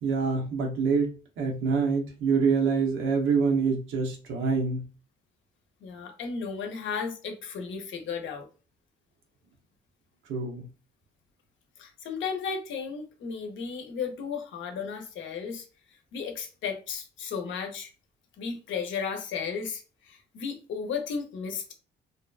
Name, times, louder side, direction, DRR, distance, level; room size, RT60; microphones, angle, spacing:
voice 1, 0.0-4.9 10.3-10.7, right 5 dB, 80° right, 0.8 m, -26 dB
voice 2, 5.8-8.5 11.8-15.7 16.1-17.9 18.4-21.7, left 6 dB, 75° left, 0.7 m, -34 dB
2.8 x 2.2 x 2.3 m
cardioid pair, 90°, 20 cm